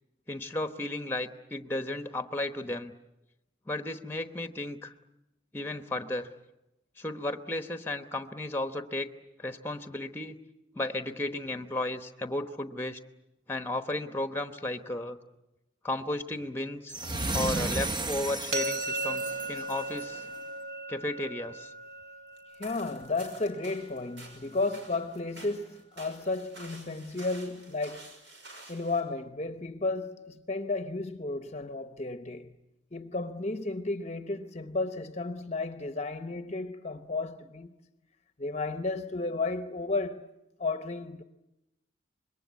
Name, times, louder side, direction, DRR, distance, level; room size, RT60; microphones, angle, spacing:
voice 1, 0.3-2.9 3.7-4.9 5.5-6.3 7.0-9.1 9.4-10.4 10.7-13.0 13.5-15.2 15.8-16.9 17.3-20.2 20.9-21.7, left 1 dB, 10° left, 1.0 m, -34 dB
sound 1, 16.9-20.2, right 2 dB, 25° right, 0.9 m, -33 dB
sound 2, 18.5-24.3, right 2 dB, 55° right, 3.8 m, -37 dB
sound 3, 22.4-29.0, right 2 dB, 75° right, 6.0 m, -50 dB
voice 2, 22.6-28.1 28.7-32.5 32.9-37.7 38.4-40.2 40.6-41.2, left 3 dB, 35° left, 0.8 m, -33 dB
26.0 x 22.0 x 8.3 m
head